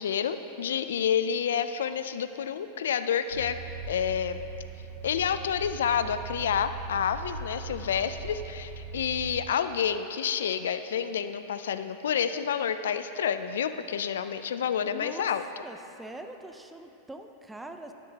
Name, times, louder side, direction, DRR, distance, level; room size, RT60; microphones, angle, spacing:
voice 1, 0.0-3.6 3.9-4.4 5.0-15.4, left 8 dB, 85° left, 11 dB, 0.4 m, -29 dB
sound 1, 3.3-9.5, right 5 dB, 80° right, 2.1 m, -40 dB
voice 2, 14.9-15.3 15.6-17.9, right 1 dB, 10° right, 6 dB, 0.6 m, -43 dB
12.5 x 9.5 x 2.9 m, 2.9 s
hypercardioid pair, 120°, 0 cm